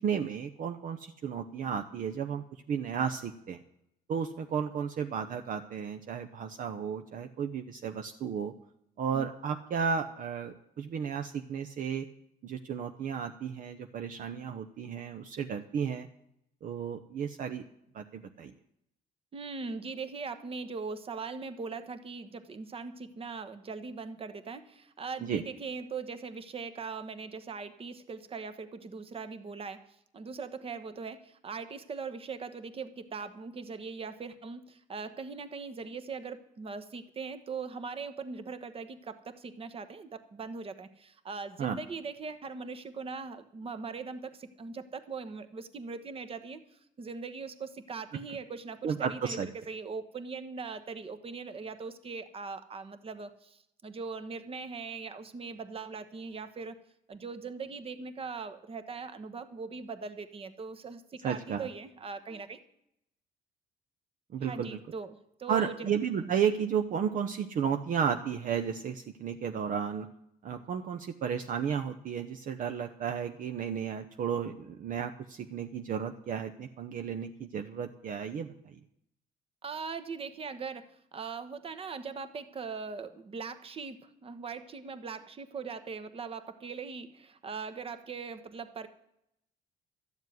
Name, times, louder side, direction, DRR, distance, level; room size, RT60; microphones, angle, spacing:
voice 1, 0.0-3.6 4.1-8.5 9.0-12.1 12.4-16.1 16.6-17.6 17.9-18.5 25.2-25.4 41.6-41.8 48.8-49.5 61.2-61.7 64.3-64.8 65.5-70.1 70.4-78.8, right 7 dB, 55° right, 6 dB, 0.8 m, -33 dB
voice 2, 19.3-29.8 30.1-56.8 57.1-62.6 64.4-65.9 66.2-66.3 79.6-88.9, right 5 dB, 35° right, 10 dB, 1.2 m, -40 dB
12.5 x 7.2 x 9.4 m, 0.78 s
cardioid pair, 110°, 17 cm